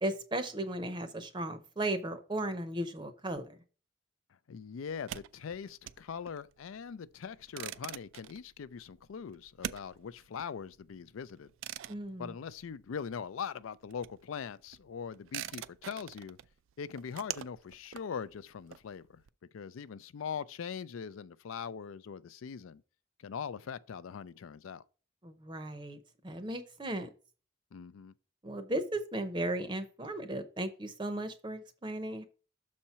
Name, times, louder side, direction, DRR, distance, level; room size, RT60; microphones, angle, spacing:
voice 1, 0.0-3.6 11.9-12.3 25.2-26.0 26.2-27.1 28.4-32.2, right 1 dB, 25° right, 0.6 m, -36 dB
voice 2, 4.5-11.5 12.2-16.4 16.8-19.2 19.5-22.8 23.2-24.8 27.7-28.1, left 6 dB, 90° left, 0.4 m, -41 dB
sound 1, 4.9-13.3 13.5-19.3, right 11 dB, 75° right, 0.3 m, -45 dB
6.3 x 4.3 x 5.6 m
head